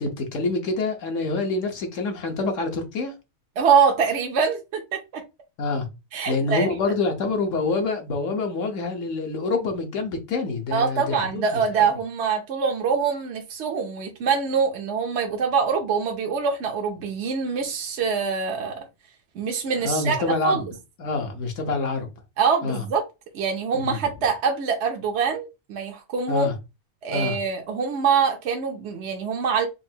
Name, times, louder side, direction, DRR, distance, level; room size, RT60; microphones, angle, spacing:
voice 1, 0.0-3.1 5.6-5.9 6.3-11.6 19.8-20.5 21.0-22.1 22.6-22.8 23.7-24.0 26.3-26.5 27.1-27.4, left 3 dB, 65° left, 1.2 m, -26 dB
voice 2, 3.6-5.2 6.1-6.7 10.7-18.9 19.3-20.7 22.4-23.1 23.3-26.5 27.0-29.7, right 6 dB, 60° right, 0.8 m, -24 dB
4.5 x 2.5 x 2.7 m
omnidirectional pair, 1.5 m